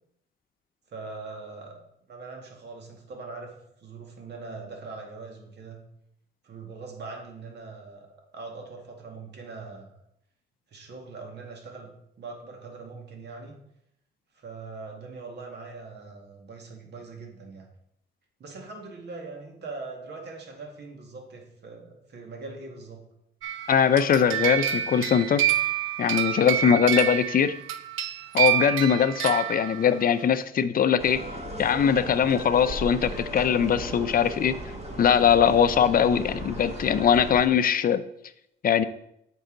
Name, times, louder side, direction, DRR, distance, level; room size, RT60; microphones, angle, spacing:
voice 1, 0.9-1.8 2.1-5.8 6.4-9.9 10.7-13.5 14.3-17.7 18.4-23.0, right 3 dB, 60° right, 1 dB, 2.0 m, -41 dB
sound 1, 23.4-30.0, right 11 dB, 85° right, 0.6 m, -28 dB
voice 2, 23.7-25.4 26.0-27.5 28.3-31.2 31.6-34.6 35.0-38.0 38.6-38.8, left 8 dB, 45° left, 12 dB, 0.6 m, -21 dB
sound 2, 31.0-37.5, right 1 dB, 30° right, 1.7 m, -36 dB
7.9 x 5.5 x 3.9 m, 0.75 s
cardioid pair, 90°, 20 cm